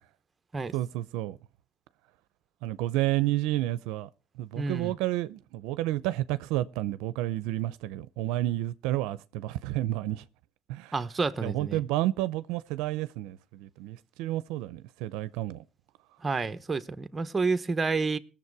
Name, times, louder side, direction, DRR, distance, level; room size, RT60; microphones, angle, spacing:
voice 1, 0.7-1.4 2.6-4.1 4.4-10.2 10.7-10.9 11.4-15.6, right 15 dB, 85° right, 0.6 m, -30 dB
voice 2, 4.6-4.9 10.9-11.8 16.2-18.2, right 4 dB, 20° right, 1.1 m, -29 dB
19.5 x 7.2 x 4.8 m
supercardioid pair, 95°, 0 cm